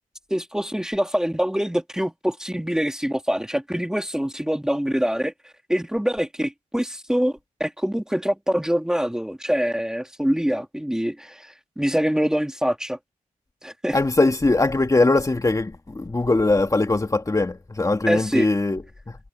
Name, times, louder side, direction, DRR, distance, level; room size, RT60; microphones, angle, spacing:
voice 1, 0.3-13.0 13.6-14.0 18.1-18.5, equal, 5° right, 2.6 m, -25 dB
voice 2, 13.9-19.2, left 2 dB, 25° left, 2.5 m, -21 dB
cardioid pair, 75°, 14 cm